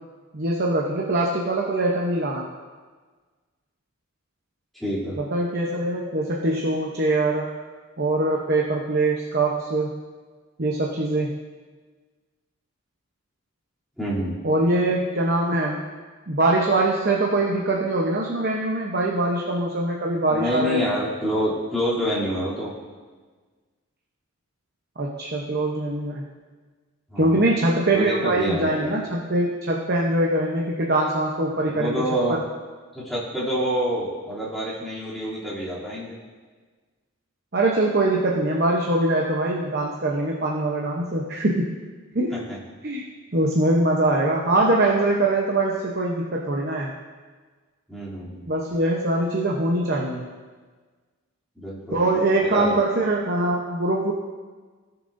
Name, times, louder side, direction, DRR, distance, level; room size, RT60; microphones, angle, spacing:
voice 1, 0.3-2.5 5.2-7.5 8.0-10.0 10.6-11.3 14.4-15.8 16.3-20.8 25.0-26.2 27.2-32.0 32.3-32.4 37.5-41.7 42.1-42.3 42.8-43.0 43.3-46.9 48.5-50.2 51.9-54.1, right 2 dB, 45° right, -2 dB, 0.9 m, -23 dB
voice 2, 4.8-5.2 14.0-14.3 20.3-22.7 27.1-27.5 27.9-28.9 31.7-32.4 32.9-36.1 42.5-42.6 47.9-48.5 51.5-52.1 52.4-52.7, equal, ahead, -11 dB, 2.9 m, -27 dB
17.5 x 7.0 x 2.6 m, 1.4 s
head